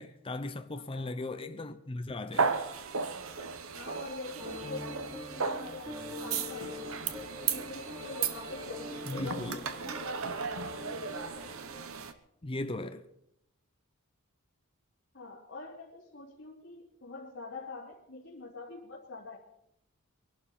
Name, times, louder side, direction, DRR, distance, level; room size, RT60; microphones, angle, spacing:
voice 1, 0.0-2.5 9.0-9.6 12.4-13.0, left 2 dB, 25° left, 0.7 m, -37 dB
voice 2, 0.7-1.6 3.7-7.1 7.5-9.6 15.1-19.4, left 3 dB, 55° left, 2.8 m, -45 dB
sound 1, 2.3-12.1, right 5 dB, 70° right, 1.1 m, -35 dB
sound 2, 4.4-11.8, left 2 dB, 20° right, 3.0 m, -44 dB
23.5 x 12.0 x 4.2 m
head